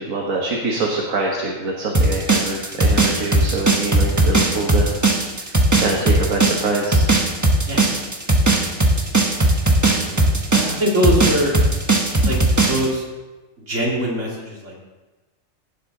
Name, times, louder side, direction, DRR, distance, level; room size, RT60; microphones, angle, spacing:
voice 1, 0.0-4.9 5.4-5.5 5.8-7.1, right 2 dB, 80° right, -1 dB, 1.7 m, -24 dB
sound 1, 1.9-12.9, right 2 dB, 15° right, 1.0 m, -17 dB
voice 2, 7.6-8.1 9.9-11.6 12.3-12.4 12.7-13.0 13.7-14.8, equal, 60° right, -3 dB, 2.8 m, -23 dB
17.0 x 7.4 x 3.8 m, 1.2 s
omnidirectional pair, 1.4 m